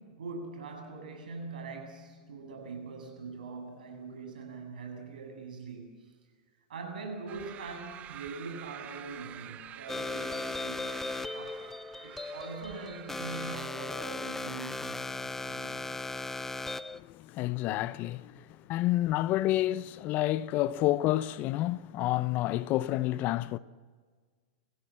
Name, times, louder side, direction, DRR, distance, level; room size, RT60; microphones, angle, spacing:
voice 1, 0.0-6.0 6.7-11.8 12.0-15.9, right 4 dB, 85° right, 7.9 m, -43 dB
sound 1, 7.3-13.7, right 12 dB, 30° right, 0.9 m, -48 dB
sound 2, 9.9-17.0, left 3 dB, 5° left, 0.7 m, -37 dB
voice 2, 17.1-18.4 18.7-23.6, left 15 dB, 40° left, 0.7 m, -29 dB
26.5 x 16.0 x 7.5 m
hypercardioid pair, 125°, 5 cm